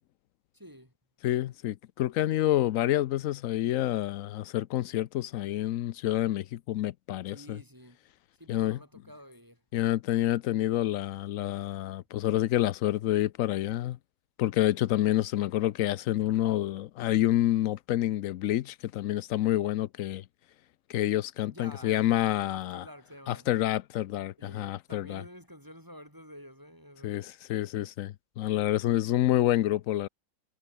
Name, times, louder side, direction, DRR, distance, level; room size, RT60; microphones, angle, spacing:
voice 1, 0.5-0.9 7.3-8.0 8.4-9.6 21.5-22.1 22.3-23.5 24.4-27.2, equal, 10° right, 5.8 m, -50 dB
voice 2, 1.2-7.6 8.5-8.8 9.7-14.0 14.4-20.2 20.9-22.8 23.3-25.2 27.0-30.1, left 13 dB, 85° left, 0.7 m, -28 dB
omnidirectional pair, 2.0 m